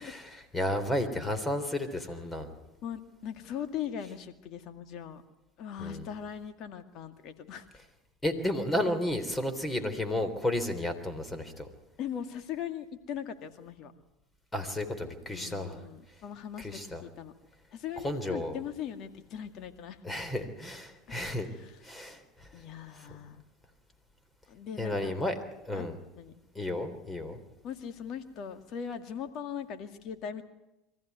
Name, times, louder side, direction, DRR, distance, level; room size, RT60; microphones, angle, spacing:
voice 1, 0.0-2.5 5.8-6.1 8.2-11.7 14.5-15.8 16.6-17.0 18.0-18.6 20.0-21.5 21.8-22.5 24.8-25.3 25.7-26.0 26.6-27.4, left 1 dB, 15° left, 10 dB, 3.6 m, -32 dB
voice 2, 2.8-5.2 5.6-7.7 12.0-13.9 15.3-17.3 17.7-20.0 21.1-21.2 21.6-21.8 22.5-23.4 24.5-25.1 25.7-25.9 26.2-26.3 27.6-30.4, left 8 dB, 55° left, 8 dB, 2.1 m, -40 dB
23.5 x 15.0 x 9.4 m, 0.97 s
hypercardioid pair, 80°, 0 cm